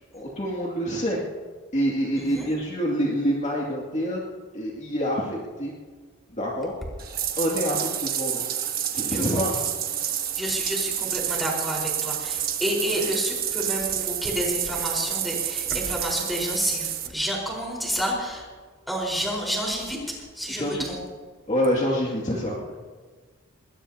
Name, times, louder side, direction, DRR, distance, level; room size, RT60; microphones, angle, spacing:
voice 1, 0.1-1.2 1.7-4.2 4.5-5.7 6.3-6.7 7.4-8.4 8.9-9.5 20.5-20.9 21.5-22.7, equal, 35° left, -3 dB, 2.4 m, -26 dB
voice 2, 2.2-2.5 9.0-9.4 10.1-18.5 18.9-21.0, equal, ahead, -3 dB, 4.6 m, -29 dB
Bathtub (filling or washing), 7.0-17.1, right 10 dB, 45° right, 1.3 m, -29 dB
21.0 x 20.5 x 2.9 m, 1.5 s
head